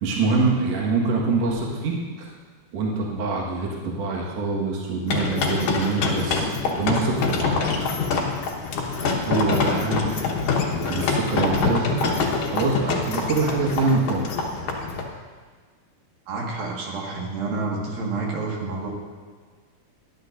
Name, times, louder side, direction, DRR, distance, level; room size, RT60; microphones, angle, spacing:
voice 1, 0.0-2.3 2.7-7.6 9.2-10.3 10.7-12.0 12.4-14.2, right 3 dB, 50° right, -3 dB, 2.3 m, -25 dB
sound 1, 5.1-15.0, left 4 dB, 65° left, 2.7 m, -25 dB
voice 2, 16.3-18.9, right 3 dB, 70° right, -2 dB, 3.6 m, -29 dB
20.5 x 11.5 x 2.6 m, 1.5 s
omnidirectional pair, 4.4 m